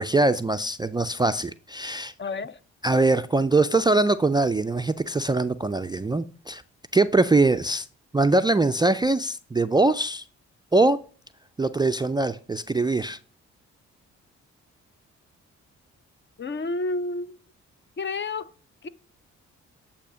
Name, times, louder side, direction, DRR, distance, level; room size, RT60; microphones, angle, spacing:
voice 1, 0.0-2.1 2.8-6.6 6.9-7.9 8.1-10.2 10.7-11.0 11.6-13.2, right 2 dB, 15° right, 0.3 m, -22 dB
voice 2, 2.2-2.6 16.4-17.4 18.0-18.5 18.8-18.9, left 3 dB, 35° left, 0.5 m, -30 dB
8.4 x 2.8 x 6.2 m
hypercardioid pair, 45°, 33 cm